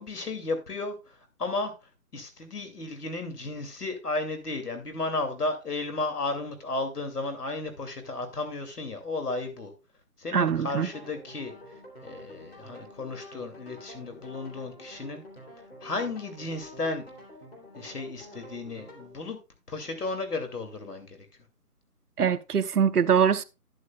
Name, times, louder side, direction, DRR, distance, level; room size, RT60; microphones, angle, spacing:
voice 1, 0.0-9.7 10.2-15.2 15.8-17.0 17.7-19.4 19.7-21.3, left 3 dB, 75° left, 2.7 m, -34 dB
voice 2, 10.3-10.9 22.2-23.4, right 7 dB, 75° right, 0.8 m, -23 dB
sound 1, 10.8-19.1, left 1 dB, 40° left, 3.0 m, -48 dB
11.5 x 9.7 x 2.3 m
hypercardioid pair, 180°, 47 cm